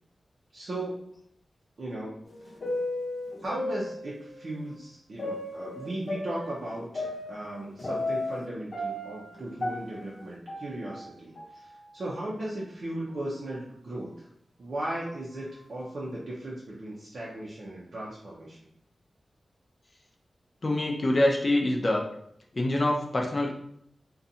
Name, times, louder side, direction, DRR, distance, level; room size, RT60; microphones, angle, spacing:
voice 1, 0.5-1.0 1.8-2.5 3.4-14.3 14.6-18.6, right 1 dB, 60° right, -6 dB, 0.5 m, -37 dB
sound 1, 2.3-4.4 5.2-8.4 8.7-11.1 11.4-11.5 12.2-12.3 13.1-13.3 13.9-14.0 14.9-15.2, left 2 dB, 60° left, 0.7 m, -35 dB
voice 2, 20.6-22.1 22.5-23.5, left 1 dB, 35° left, 0 dB, 0.4 m, -25 dB
2.6 x 2.2 x 2.6 m, 0.68 s
wide cardioid pair, 120°, 0 cm